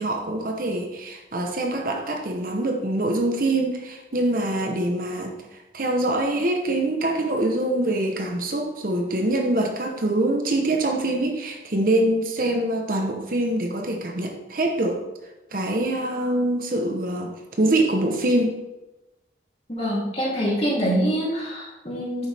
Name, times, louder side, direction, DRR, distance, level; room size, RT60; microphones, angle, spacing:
voice 1, 0.0-15.0 15.5-18.5, right 1 dB, 50° right, 2 dB, 1.0 m, -24 dB
voice 2, 19.7-22.3, equal, 35° left, -6 dB, 3.0 m, -25 dB
9.2 x 7.0 x 3.5 m, 1.0 s
head